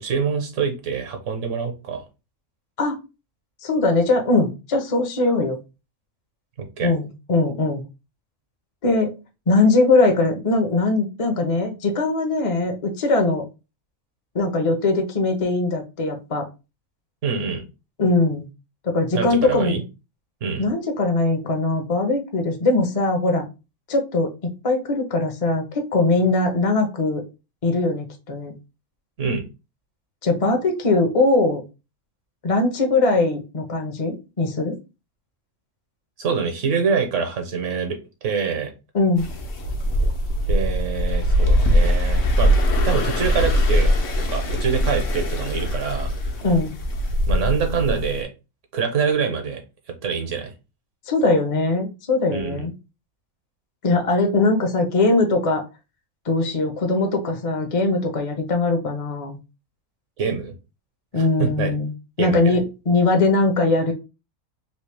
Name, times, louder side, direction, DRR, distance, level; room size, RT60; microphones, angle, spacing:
voice 1, 0.0-2.0 6.6-6.9 17.2-17.6 19.1-19.8 20.4-20.7 29.2-29.4 36.2-38.7 40.5-42.5 42.8-46.1 47.3-48.3 48.7-49.6 50.0-50.5 52.3-52.7 60.2-60.5 61.1-61.7 62.2-62.6, right 6 dB, 70° right, 5 dB, 1.2 m, -25 dB
voice 2, 3.6-5.6 6.8-7.8 8.8-9.1 9.5-13.4 14.3-16.5 18.0-18.5 18.8-19.8 20.6-23.4 23.9-25.6 25.9-27.2 27.6-28.5 30.2-31.6 32.4-34.8 38.9-39.3 46.4-46.7 51.1-52.7 53.8-55.6 56.3-59.4 61.1-63.9, left 3 dB, 40° left, 4 dB, 0.5 m, -21 dB
sound 1, 39.2-48.2, equal, 75° left, 1.1 m, -21 dB
3.1 x 2.8 x 3.3 m, 0.28 s
omnidirectional pair, 1.3 m